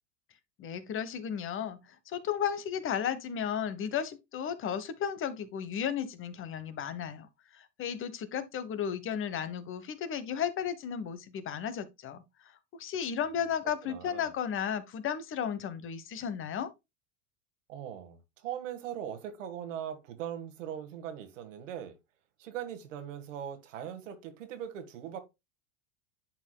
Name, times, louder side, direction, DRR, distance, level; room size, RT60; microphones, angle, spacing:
voice 1, 0.6-1.8 2.1-7.3 7.5-12.2 12.8-16.7, left 8 dB, 35° left, 1.1 m, -34 dB
voice 2, 13.8-14.3 17.7-21.9 22.4-25.2, right 9 dB, 85° right, 1.8 m, -40 dB
10.5 x 4.7 x 2.2 m
supercardioid pair, 115°, 37 cm